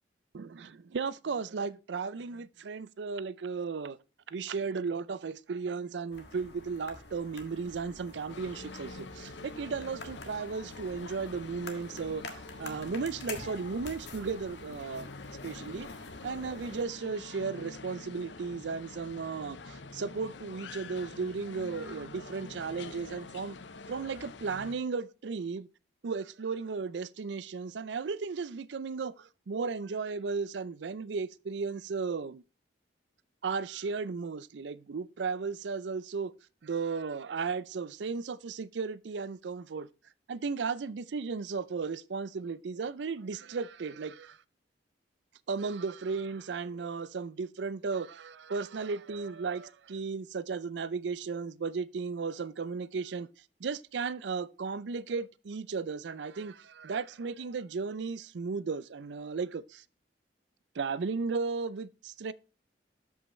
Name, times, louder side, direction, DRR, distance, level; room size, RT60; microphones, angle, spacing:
voice 1, 0.3-4.0 4.3-15.2 15.4-15.9 16.2-23.6 23.9-25.7 26.0-32.4 33.4-36.3 36.6-39.9 40.3-44.4 45.5-53.3 53.6-59.8 60.8-62.3, right 5 dB, 80° right, 0.5 m, -35 dB
sound 1, 6.1-16.8, left 3 dB, 70° left, 1.6 m, -47 dB
sound 2, 8.3-24.8, left 3 dB, 85° left, 0.7 m, -46 dB
13.0 x 5.5 x 3.2 m
head